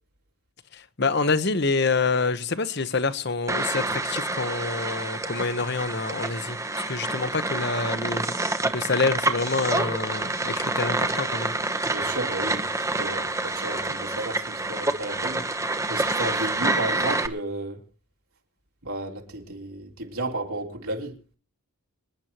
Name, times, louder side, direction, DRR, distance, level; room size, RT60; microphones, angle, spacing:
voice 1, 0.7-6.6 6.9-8.3 8.7-11.5, left 4 dB, 50° left, 1.0 m, -27 dB
sound 1, 3.5-17.3, right 2 dB, 15° right, 0.9 m, -28 dB
voice 2, 11.9-15.5 15.9-17.8 18.8-21.1, right 2 dB, 75° right, 3.6 m, -33 dB
26.0 x 10.5 x 3.0 m
head